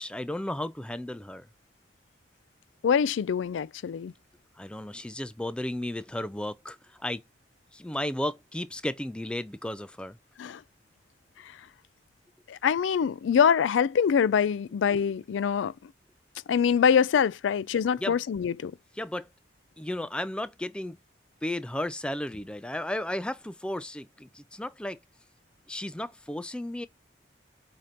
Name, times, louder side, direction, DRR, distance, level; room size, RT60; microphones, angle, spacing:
voice 1, 0.0-1.5 4.6-7.2 7.7-10.2 18.0-18.2 18.9-19.3 19.8-21.0 21.4-25.0 25.7-26.9, left 1 dB, 5° left, 0.3 m, -34 dB
voice 2, 2.8-4.1 10.4-10.6 12.5-15.7 16.5-18.7, left 7 dB, 85° left, 0.4 m, -24 dB
7.5 x 2.8 x 5.1 m
head